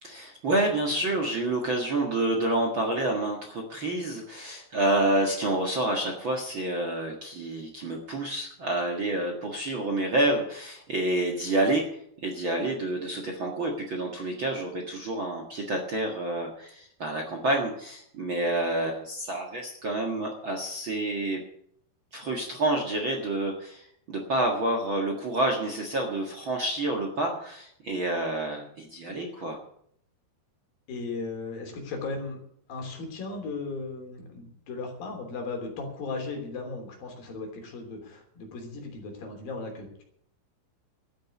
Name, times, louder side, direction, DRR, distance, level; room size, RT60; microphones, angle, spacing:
voice 1, 0.0-11.8 12.2-21.4 22.1-29.6, right 1 dB, 50° right, 2 dB, 1.6 m, -28 dB
voice 2, 30.9-32.4 32.7-40.0, left 3 dB, 60° left, 2 dB, 4.8 m, -36 dB
13.0 x 9.0 x 8.3 m, 0.67 s
omnidirectional pair, 4.7 m